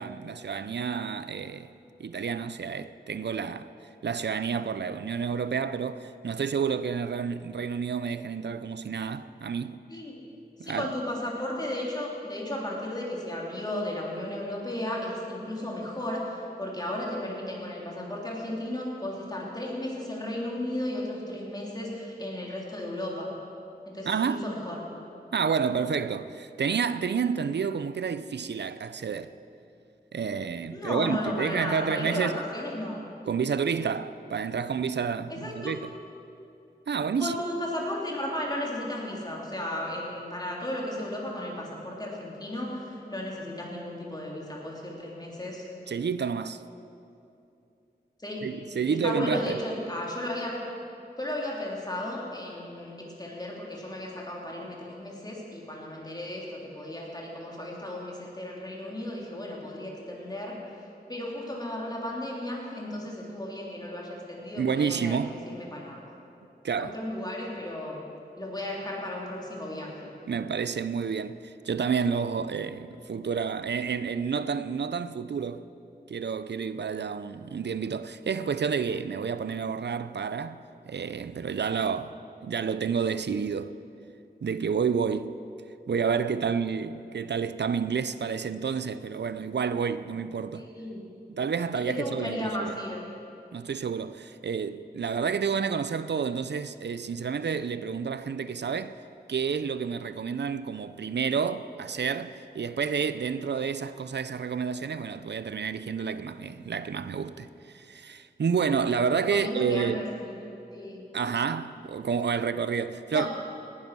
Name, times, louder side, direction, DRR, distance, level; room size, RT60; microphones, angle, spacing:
voice 1, 0.0-1.7 2.0-3.7 4.0-9.8 10.6-10.9 24.0-24.4 25.3-29.3 30.1-32.4 33.3-35.9 36.9-37.4 45.9-46.6 48.4-49.6 64.6-65.4 66.6-66.9 70.3-75.7 76.1-82.1 82.4-83.8 84.4-85.3 85.9-90.7 91.4-92.7 93.5-99.0 99.3-110.0 111.1-113.3, right 6 dB, 85° right, 0.5 m, -29 dB
voice 2, 10.6-23.3 23.9-24.8 30.7-33.0 35.3-35.7 37.2-45.6 48.2-48.5 48.9-50.6 51.2-60.6 61.1-66.0 66.8-68.0 68.4-70.1 90.5-91.0 91.9-93.0 109.1-111.0 113.1-113.3, left 1 dB, 25° left, 3.4 m, -34 dB
18.0 x 11.0 x 6.1 m
wide cardioid pair, 55°, 17 cm